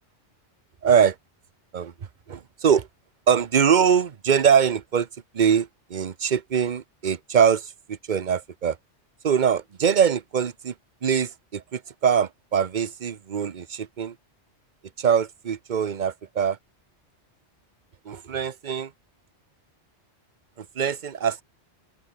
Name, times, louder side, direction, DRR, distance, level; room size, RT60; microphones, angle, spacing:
voice 1, 0.8-1.2 1.7-1.9 2.3-2.9 3.3-5.1 5.3-8.8 9.2-10.7 11.0-14.1 15.0-16.6 18.0-18.9 20.6-21.4, right 7 dB, 45° right, 0.9 m, -23 dB
open air
omnidirectional pair, 1.2 m